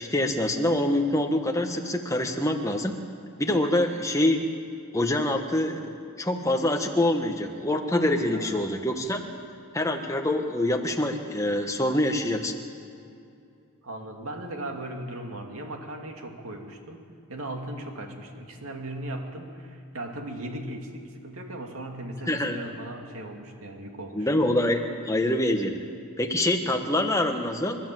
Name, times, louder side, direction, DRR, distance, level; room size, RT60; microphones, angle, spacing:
voice 1, 0.0-2.9 3.4-4.4 4.9-9.2 9.7-12.5 22.3-22.6 24.1-25.8 26.2-27.8, left 1 dB, 15° left, 4 dB, 1.3 m, -25 dB
voice 2, 8.3-8.9 13.8-24.3 26.6-26.9, right 1 dB, 80° right, 3 dB, 2.4 m, -38 dB
29.5 x 11.5 x 7.6 m, 2.5 s
head